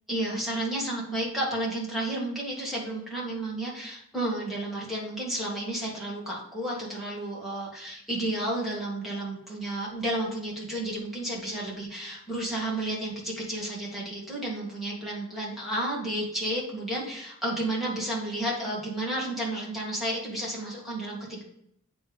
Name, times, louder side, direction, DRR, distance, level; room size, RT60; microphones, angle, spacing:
voice 1, 0.1-21.4, right 1 dB, ahead, -5 dB, 2.0 m, -32 dB
8.0 x 3.5 x 5.1 m, 0.72 s
head